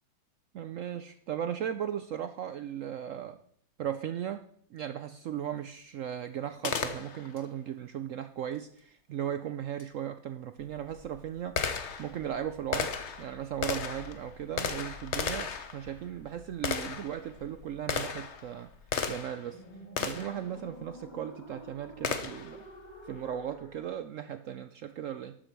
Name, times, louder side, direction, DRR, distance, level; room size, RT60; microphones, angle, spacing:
voice 1, 0.5-3.4 3.8-4.4 4.7-12.9 13.2-18.7 19.1-19.6 20.0-22.6 23.0-25.4, right 10 dB, 65° right, 10 dB, 0.8 m, -37 dB
Gunshot gunfire, 6.6-7.5 9.8-9.9 10.6-19.5 20.0-20.4 22.0-22.6, left 6 dB, 50° left, 1.1 m, -35 dB
sound 1, 10.8-24.0, left 1 dB, 25° left, 1.8 m, -52 dB
12.5 x 8.9 x 4.5 m, 0.62 s
omnidirectional pair, 1.8 m